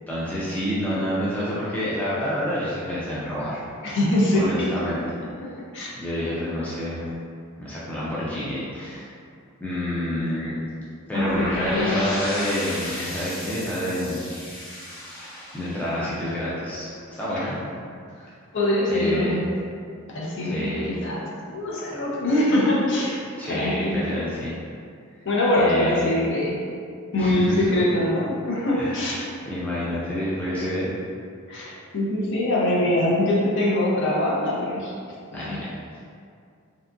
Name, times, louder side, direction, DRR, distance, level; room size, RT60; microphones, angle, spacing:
voice 1, 0.1-3.6 4.3-5.0 6.0-7.1 7.6-9.1 9.6-10.6 11.1-14.3 15.1-17.6 18.2-18.3 18.9-19.6 20.4-20.9 23.4-24.6 25.6-26.2 27.2-27.7 28.7-29.0 29.4-30.9 35.3-35.7, left 1 dB, 5° left, -9 dB, 0.3 m, -28 dB
voice 2, 3.8-4.7 5.7-5.9 11.1-11.3 11.7-12.1 12.9-13.1 18.5-19.5 20.1-21.3 21.5-23.2 23.5-24.0 25.2-26.6 27.1-29.3 31.5-34.9 35.3-35.6, left 1 dB, 55° left, -5 dB, 0.6 m, -23 dB
sound 1, 11.1-17.0, left 1 dB, 85° left, 1.3 m, -33 dB
2.7 x 2.3 x 2.5 m, 2.3 s
head